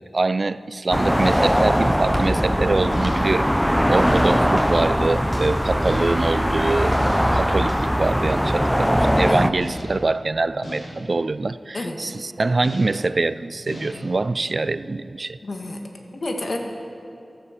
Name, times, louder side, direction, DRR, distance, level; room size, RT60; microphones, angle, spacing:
voice 1, 0.1-3.5 3.9-7.0 7.3-15.4, right 3 dB, 55° right, 16 dB, 0.4 m, -24 dB
sound 1, 0.9-9.5, equal, ahead, 0.6 m, -20 dB
sound 2, 1.1-8.5, equal, 20° right, 3.3 m, -36 dB
sound 3, 1.2-1.7 2.9-3.4 4.0-4.5 5.9-6.4 7.0-7.6 9.6-10.1 10.6-11.1 12.6-13.1 13.7-14.1, equal, 80° left, 4.4 m, -36 dB
voice 2, 11.7-12.1 15.4-16.6, left 2 dB, 60° left, 3 dB, 1.8 m, -30 dB
16.0 x 13.0 x 6.8 m, 2.6 s
wide cardioid pair, 70°, 0 cm